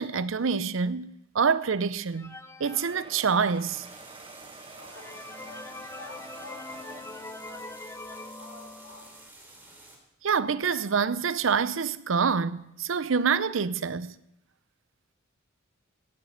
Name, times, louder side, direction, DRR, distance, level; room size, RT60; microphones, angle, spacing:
voice 1, 0.0-3.9 10.2-14.2, right 5 dB, 70° right, 0.6 m, -26 dB
sound 1, 2.1-3.8 4.3-4.4 4.8-9.3, left 2 dB, 15° left, 0.6 m, -43 dB
sound 2, 2.7-8.2 8.8-8.9 9.2-9.3 9.6-9.7, right 4 dB, 25° right, 0.8 m, -49 dB
sound 3, 3.4-9.9, right 2 dB, 10° right, 3.1 m, -51 dB
voice 2, 4.8-7.7 8.1-9.1, left 2 dB, 80° left, 4.2 m, -50 dB
17.5 x 7.5 x 7.9 m
head